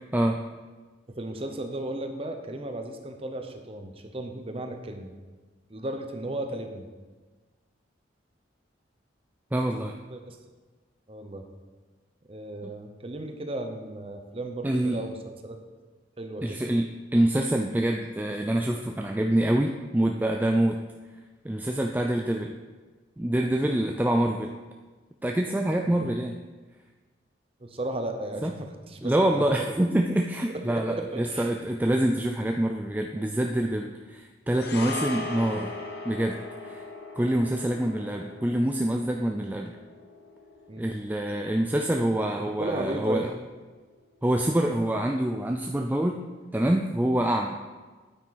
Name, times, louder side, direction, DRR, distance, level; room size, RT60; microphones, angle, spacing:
voice 1, 0.1-0.4 9.5-10.0 12.6-12.7 14.6-15.0 16.4-20.8 21.4-22.6 23.2-24.6 25.2-26.4 28.4-28.5 29.0-35.7 36.1-36.8 37.2-39.8 40.8-43.3 44.2-46.2 46.5-47.8, right 1 dB, 10° right, 3 dB, 0.3 m, -26 dB
voice 2, 1.1-5.1 5.7-6.8 10.1-10.4 11.1-11.4 12.3-15.6 16.2-16.6 25.8-26.1 27.6-29.6 30.5-31.5 40.7-40.9 42.4-43.3, right 1 dB, 30° right, 5 dB, 0.9 m, -35 dB
sound 1, 34.5-43.0 43.3-43.5, left 2 dB, 60° left, 0.9 m, -39 dB
9.0 x 8.7 x 4.2 m, 1.3 s
head